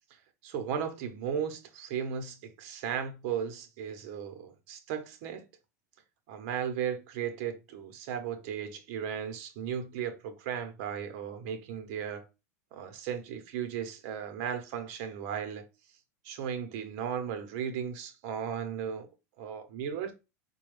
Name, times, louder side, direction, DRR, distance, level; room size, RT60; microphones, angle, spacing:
voice 1, 0.1-5.5 6.3-12.2 12.7-15.6 16.2-19.1 19.4-20.1, right 8 dB, 60° right, 0.9 m, -36 dB
4.1 x 2.3 x 3.2 m
supercardioid pair, 125°, 9 cm